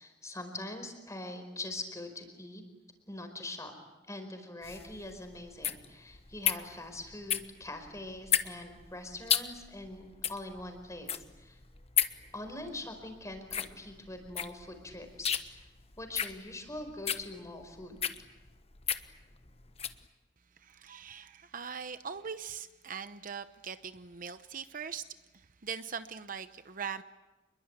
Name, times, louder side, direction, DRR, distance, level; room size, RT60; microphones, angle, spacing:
voice 1, 0.0-2.6 3.1-3.7 4.1-11.6 12.3-15.7 16.0-18.0, left 2 dB, 15° left, 7 dB, 4.8 m, -43 dB
sound 1, 4.6-20.0, left 8 dB, 35° left, 1.2 m, -34 dB
voice 2, 20.6-25.0 25.3-27.0, right 6 dB, 50° right, 11 dB, 0.9 m, -41 dB
28.0 x 22.0 x 9.0 m, 1.1 s
head